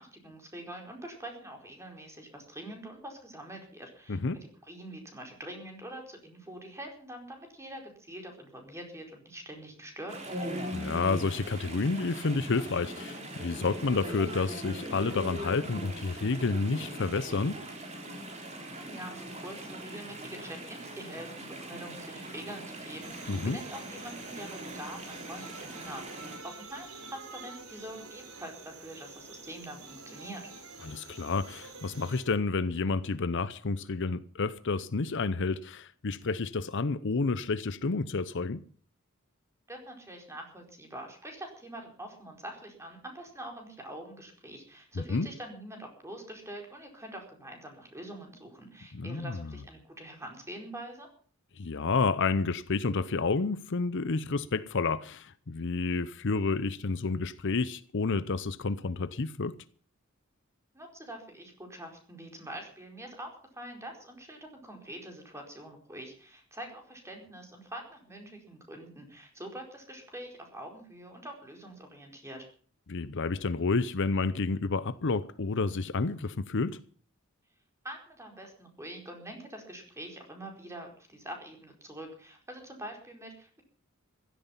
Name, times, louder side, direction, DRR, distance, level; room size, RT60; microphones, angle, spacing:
voice 1, 0.0-4.2 4.6-10.4 18.7-30.5 39.7-51.1 60.7-72.5 77.8-83.6, right 1 dB, 15° right, 4.7 m, -45 dB
voice 2, 4.1-4.4 10.7-17.6 23.3-23.6 30.8-38.6 44.9-45.3 48.9-49.5 51.6-59.5 72.9-76.8, left 4 dB, 60° left, 0.7 m, -30 dB
Chatter / Stream, 10.1-26.4, right 1 dB, 35° right, 4.0 m, -41 dB
sound 1, 23.0-32.3, right 4 dB, 85° right, 3.9 m, -48 dB
16.0 x 13.0 x 5.8 m
head